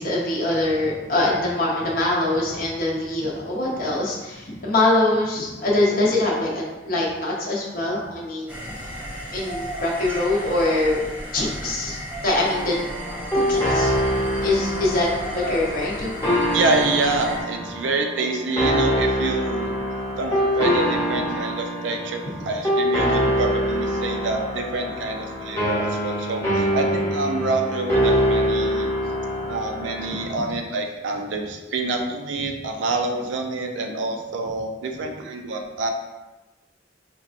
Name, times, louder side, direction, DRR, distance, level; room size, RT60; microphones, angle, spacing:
voice 1, 0.0-8.8 9.3-11.0 11.3-12.0 12.2-12.7 13.3-13.9 14.4-15.1 15.3-16.1, left 2 dB, 50° left, -4 dB, 0.6 m, -23 dB
sound 1, 8.5-17.4, equal, 10° right, 0.5 m, -34 dB
sound 2, 12.3-30.3, equal, 15° left, 0.8 m, -24 dB
voice 2, 16.5-19.8 20.2-28.9 29.5-35.9, right 3 dB, 75° right, 3 dB, 0.4 m, -27 dB
4.5 x 2.2 x 2.5 m, 1.1 s
head